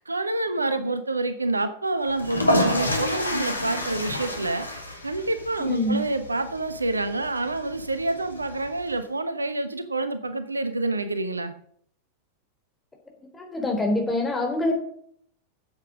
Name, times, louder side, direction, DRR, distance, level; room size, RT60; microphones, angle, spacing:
voice 1, 0.0-11.5, right 2 dB, 80° right, 11 dB, 1.0 m, -28 dB
sound 1, 2.1-8.9, left 1 dB, 80° left, 2.0 m, -29 dB
voice 2, 5.6-6.0 13.3-14.7, left 1 dB, 15° left, 2 dB, 3.6 m, -25 dB
8.8 x 8.2 x 6.2 m, 0.64 s
figure-of-eight pair, 90°, 0 cm